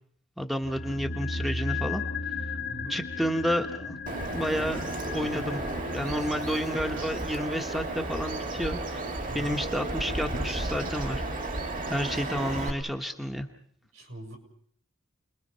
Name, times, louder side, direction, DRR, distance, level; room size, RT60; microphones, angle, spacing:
voice 1, 0.4-2.0 2.9-4.0 4.3-4.8 5.1-5.6 5.9-9.0 9.3-11.2 11.9-13.5, equal, ahead, 4 dB, 1.2 m, -30 dB
sound 1, 0.6-10.9 11.1-11.2, left 3 dB, 45° left, 1.3 m, -37 dB
voice 2, 2.6-3.0 6.2-6.3 9.3-9.5 12.1-12.3 13.9-14.4, right 1 dB, 75° right, 2 dB, 7.1 m, -43 dB
Bird vocalization bird call bird song, 4.1-12.7, right 2 dB, 40° right, 2.1 m, -33 dB
29.5 x 22.0 x 5.6 m, 0.62 s
head